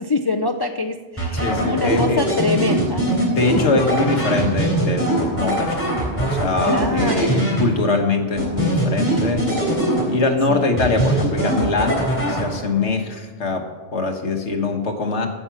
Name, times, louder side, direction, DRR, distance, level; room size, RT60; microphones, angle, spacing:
voice 1, 0.0-3.3 3.7-3.8 6.6-7.5 10.5-10.7, left 3 dB, 40° left, 6 dB, 0.3 m, -24 dB
sound 1, 1.2-8.0 8.4-10.4 10.8-12.8, right 1 dB, 10° left, 3.5 m, -22 dB
voice 2, 1.3-2.3 3.3-9.5 10.1-15.3, left 3 dB, 80° left, 4 dB, 1.6 m, -23 dB
15.0 x 5.7 x 5.9 m, 1.3 s
omnidirectional pair, 1.2 m